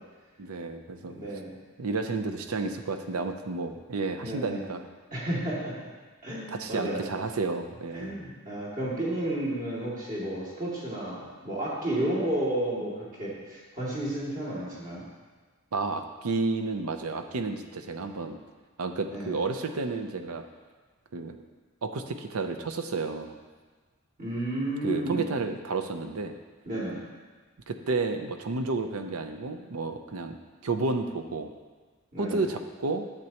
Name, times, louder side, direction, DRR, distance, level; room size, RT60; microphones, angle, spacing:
voice 1, 0.4-1.2 1.8-4.8 6.5-8.1 15.7-18.4 18.8-20.4 21.1-21.4 21.8-23.4 24.8-26.4 27.7-30.4 30.6-31.5 32.2-33.1, right 3 dB, 75° right, 7 dB, 0.6 m, -31 dB
voice 2, 1.1-1.5 4.2-4.7 5.1-5.9 6.2-7.1 7.9-15.0 19.1-19.4 24.2-25.3 26.7-27.0 32.1-32.4, right 1 dB, 40° right, -7 dB, 2.4 m, -32 dB
9.6 x 7.4 x 2.9 m, 1.4 s
head